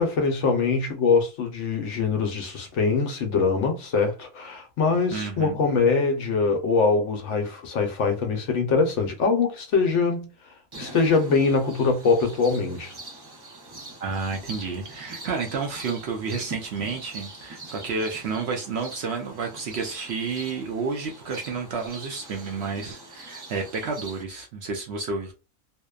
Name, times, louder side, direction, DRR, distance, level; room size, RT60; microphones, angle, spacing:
voice 1, 0.0-10.3 10.8-12.9, left 4 dB, 65° left, 0.9 m, -23 dB
voice 2, 5.1-5.6 14.0-25.3, right 4 dB, 65° right, 0.7 m, -30 dB
sound 1, 10.7-24.2, right 2 dB, 35° right, 0.4 m, -43 dB
2.7 x 2.1 x 2.3 m
omnidirectional pair, 1.4 m